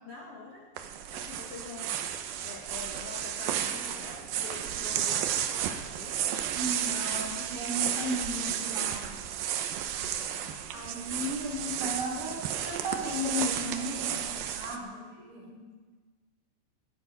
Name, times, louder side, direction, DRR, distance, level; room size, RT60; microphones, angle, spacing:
voice 1, 0.0-0.7 1.1-2.0 2.4-6.3 9.9-10.6 11.5-11.6 12.1-12.2 14.8-15.6, left 4 dB, 85° left, -2 dB, 1.3 m, -46 dB
sound 1, 0.8-14.8, right 10 dB, 75° right, 2.2 m, -33 dB
voice 2, 6.5-9.0 10.7-15.6, equal, 45° right, -2 dB, 5.7 m, -35 dB
21.0 x 12.0 x 5.1 m, 1.4 s
omnidirectional pair, 5.2 m